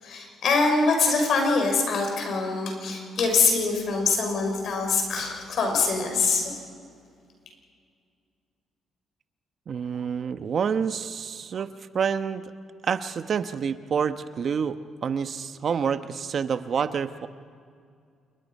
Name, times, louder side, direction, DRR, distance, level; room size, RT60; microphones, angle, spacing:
voice 1, 0.0-6.5, left 4 dB, 65° left, 3 dB, 5.9 m, -24 dB
voice 2, 9.7-12.4 12.8-14.8 15.0-17.3, right 6 dB, 55° right, 10 dB, 1.0 m, -28 dB
27.5 x 22.0 x 5.5 m, 2.2 s
cardioid pair, 90°, 0 cm